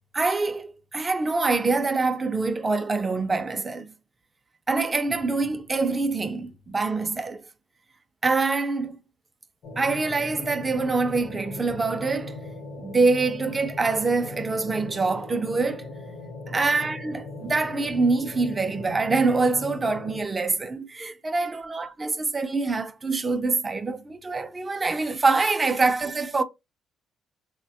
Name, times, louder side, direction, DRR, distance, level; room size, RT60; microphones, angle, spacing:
voice 1, 0.1-3.9 4.7-7.4 8.2-9.0 9.7-12.4 12.8-15.9 16.5-26.4, right 3 dB, 20° right, 0.4 m, -25 dB
sound 1, 9.6-20.2, left 2 dB, 65° left, 0.7 m, -39 dB
3.3 x 2.1 x 2.6 m
cardioid pair, 125°, 0 cm